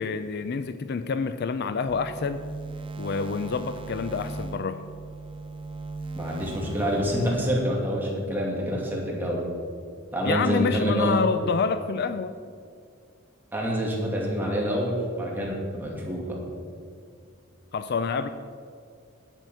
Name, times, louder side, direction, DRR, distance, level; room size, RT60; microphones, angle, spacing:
voice 1, 0.0-2.4 3.0-4.8 10.2-12.3 17.7-18.3, left 5 dB, 50° left, 11 dB, 0.4 m, -27 dB
sound 1, 1.8-7.3, right 2 dB, 25° right, 0.9 m, -38 dB
voice 2, 6.1-9.5 10.1-11.1 13.5-16.4, equal, 10° right, -3 dB, 2.4 m, -27 dB
11.0 x 8.2 x 6.2 m, 2.2 s
head